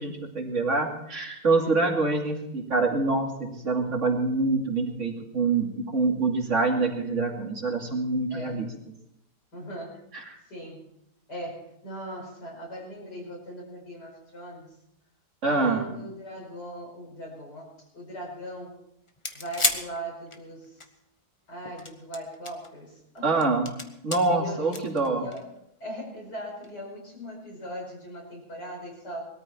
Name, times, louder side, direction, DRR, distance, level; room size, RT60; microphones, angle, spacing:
voice 1, 0.0-8.7 10.3-10.4 15.4-15.9 23.2-23.7 24.0-25.2, right 3 dB, 45° right, 1 dB, 2.8 m, -25 dB
voice 2, 8.3-8.6 9.5-10.0 10.5-10.9 11.3-14.8 15.4-18.8 19.3-20.8 21.5-23.4 24.4-24.9 25.2-25.5 25.8-29.3, equal, 70° left, -3 dB, 5.7 m, -39 dB
sound 1, 19.1-20.9 21.7-22.7 23.2-24.2 24.7-25.6 26.6-26.7, left 2 dB, 20° left, 1.1 m, -31 dB
20.5 x 13.5 x 4.4 m, 0.79 s
omnidirectional pair, 1.8 m